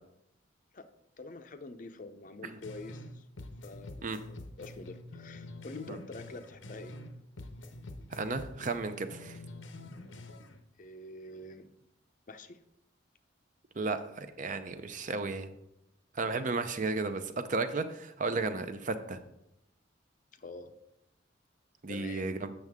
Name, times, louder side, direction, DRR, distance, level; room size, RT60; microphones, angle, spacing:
voice 1, 1.2-3.2 3.6-6.9 10.8-11.7 12.3-12.6 20.4-20.7 21.9-22.4, left 2 dB, 45° left, 9 dB, 0.5 m, -46 dB
sound 1, 2.6-3.1 3.4-7.1 7.4-10.6, left 2 dB, 85° left, 0.8 m, -46 dB
voice 2, 8.1-9.4 13.8-15.5 16.1-19.2 21.8-22.5, right 3 dB, 40° right, 10 dB, 0.6 m, -34 dB
7.8 x 6.6 x 3.6 m, 0.83 s
head